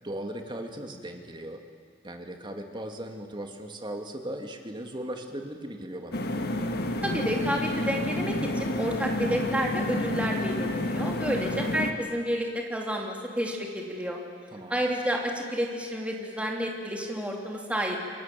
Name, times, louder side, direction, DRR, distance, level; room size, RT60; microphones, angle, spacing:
voice 1, 0.0-1.6 2.0-6.2 11.4-11.7 14.5-14.8, right 1 dB, 25° right, 3 dB, 2.4 m, -38 dB
sound 1, 6.1-11.9, left 1 dB, 60° left, 1.7 m, -29 dB
voice 2, 7.0-14.2 14.7-18.0, equal, 5° right, 0 dB, 3.0 m, -30 dB
28.5 x 22.5 x 7.6 m, 2.2 s
head